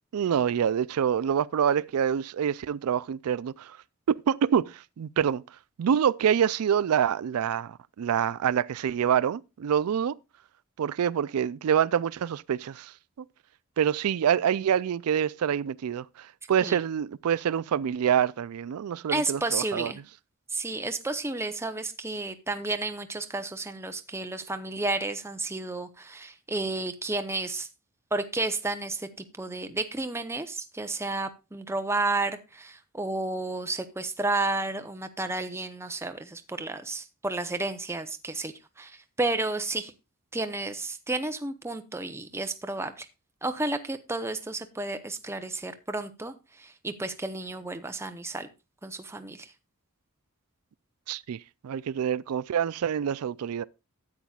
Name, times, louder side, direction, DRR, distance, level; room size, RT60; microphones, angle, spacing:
voice 1, 0.1-3.8 4.1-5.4 5.8-10.2 10.8-12.9 13.8-19.9 51.1-53.6, right 8 dB, 75° right, 0.4 m, -26 dB
voice 2, 19.1-20.0 20.5-27.7 28.1-39.9 40.3-43.1 43.4-48.5 48.8-49.5, right 2 dB, 10° right, 0.7 m, -32 dB
13.0 x 8.8 x 2.3 m
head